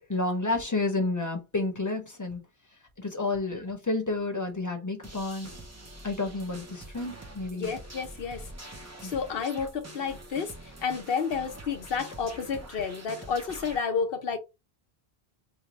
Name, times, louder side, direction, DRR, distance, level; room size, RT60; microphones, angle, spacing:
voice 1, 0.1-2.4 3.0-5.5 6.0-7.7 9.0-9.1, left 2 dB, 20° left, 0.9 m, -30 dB
sound 1, 5.0-13.8, right 1 dB, 20° right, 0.5 m, -45 dB
voice 2, 7.5-8.4 9.0-14.4, left 6 dB, 65° left, 1.0 m, -31 dB
3.2 x 2.3 x 4.0 m
omnidirectional pair, 1.0 m